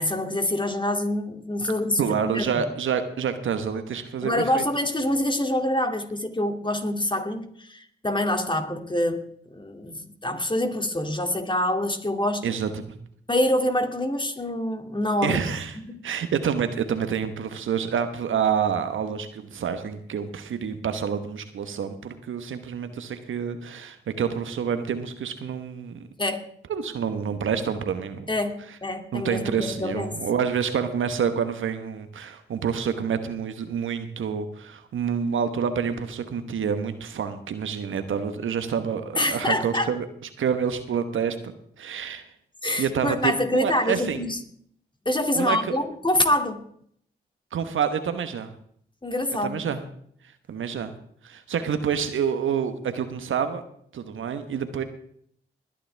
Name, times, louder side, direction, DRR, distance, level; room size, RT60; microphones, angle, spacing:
voice 1, 0.0-2.5 4.2-9.2 9.5-12.6 13.3-15.4 15.7-16.0 26.2-26.4 28.3-28.5 28.8-30.2 39.2-39.9 42.6-44.4 45.1-46.6 49.0-49.6, left 1 dB, 25° left, 5 dB, 2.5 m, -26 dB
voice 2, 2.0-4.6 12.4-13.0 15.2-15.8 16.0-26.1 26.7-28.2 29.1-40.1 40.4-41.4 41.8-42.2 42.8-44.2 45.3-45.7 47.5-48.5 49.4-49.8 50.5-50.9 51.2-53.6 53.9-54.8, right 7 dB, 70° right, 10 dB, 1.2 m, -28 dB
20.5 x 10.0 x 3.5 m, 0.63 s
supercardioid pair, 40°, 21 cm